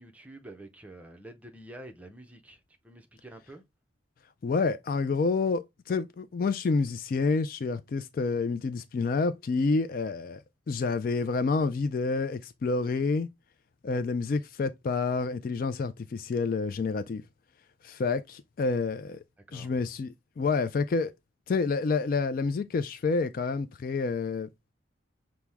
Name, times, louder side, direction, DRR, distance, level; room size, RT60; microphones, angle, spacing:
voice 1, 0.0-3.6 19.5-19.8, right 1 dB, 5° right, 0.6 m, -48 dB
voice 2, 4.4-13.3 13.8-17.2 17.8-19.2 19.5-21.1 21.5-24.5, left 4 dB, 50° left, 0.3 m, -28 dB
5.9 x 2.1 x 3.4 m
head